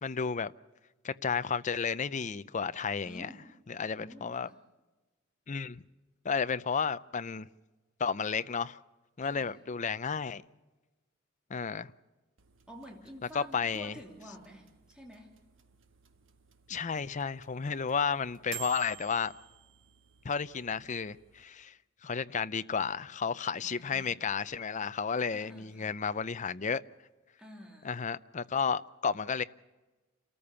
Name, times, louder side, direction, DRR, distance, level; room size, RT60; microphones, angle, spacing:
voice 1, 0.0-0.5 1.0-3.3 3.7-4.5 5.5-5.8 6.2-7.5 8.0-8.8 9.2-10.4 11.5-11.9 13.3-13.9 16.7-19.3 20.2-21.8 22.0-26.8 27.8-29.4, left 6 dB, 40° left, 0.6 m, -32 dB
voice 2, 3.0-3.5 3.9-4.6 9.2-9.6 12.7-15.4 23.5-24.2 25.3-26.0 27.4-28.0, equal, 5° right, 3.0 m, -50 dB
sound 1, 12.4-21.4, right 13 dB, 70° right, 1.3 m, -52 dB
29.0 x 14.0 x 7.0 m
head